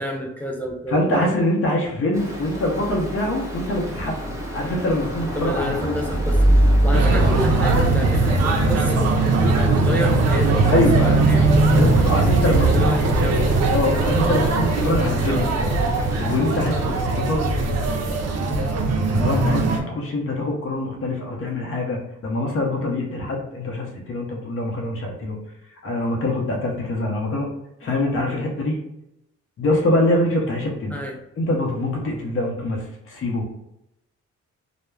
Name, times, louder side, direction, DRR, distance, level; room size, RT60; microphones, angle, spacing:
voice 1, 0.0-1.4 5.4-9.1 9.7-11.4 12.5-13.7 18.5-18.8 30.9-31.2, equal, 5° left, 0 dB, 0.3 m, -29 dB
voice 2, 0.9-4.1 4.5-6.0 10.6-11.2 11.8-12.8 13.7-15.5 16.2-17.4 19.1-25.4 25.8-27.5 27.8-28.8 29.6-31.0 31.4-33.6, left 1 dB, 45° left, -1 dB, 0.6 m, -24 dB
Stream, 2.1-17.0, right 1 dB, 10° right, 0.8 m, -26 dB
sound 1, 6.9-19.8, right 3 dB, 60° right, 0.5 m, -20 dB
2.2 x 2.0 x 3.1 m, 0.84 s
cardioid pair, 90°, 30 cm